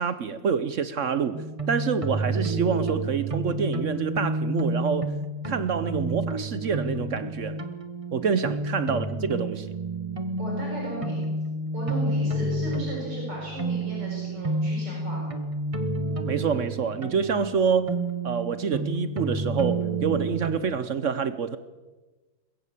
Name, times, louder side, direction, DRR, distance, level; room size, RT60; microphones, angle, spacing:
voice 1, 0.0-5.1 5.5-7.6 8.1-9.7 16.3-17.9 18.2-21.6, right 6 dB, 60° right, 0.8 m, -27 dB
sound 1, 1.3-20.6, right 2 dB, 20° right, 1.0 m, -30 dB
voice 2, 10.4-11.2 11.7-15.4, right 1 dB, 90° right, 7.8 m, -36 dB
22.0 x 14.0 x 8.4 m
omnidirectional pair, 2.4 m